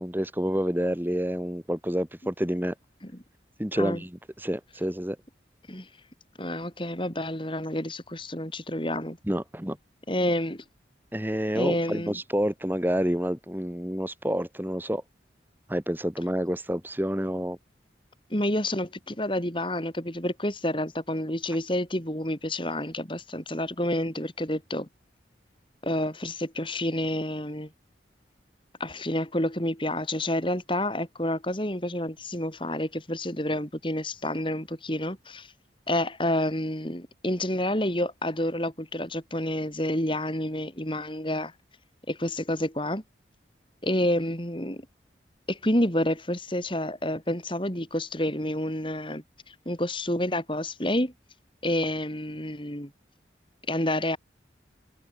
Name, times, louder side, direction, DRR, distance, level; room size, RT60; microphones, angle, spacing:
voice 1, 0.0-2.7 3.6-5.2 9.3-9.8 11.1-15.0 15.7-17.6, equal, 10° right, 1.9 m, -28 dB
voice 2, 6.4-9.2 10.1-10.6 11.5-12.2 18.3-24.9 25.8-27.7 28.8-35.5 35.9-41.5 42.1-43.0 43.8-44.8 45.5-49.2 49.7-51.1 51.6-52.9 53.7-54.2, left 1 dB, 25° left, 5.3 m, -29 dB
head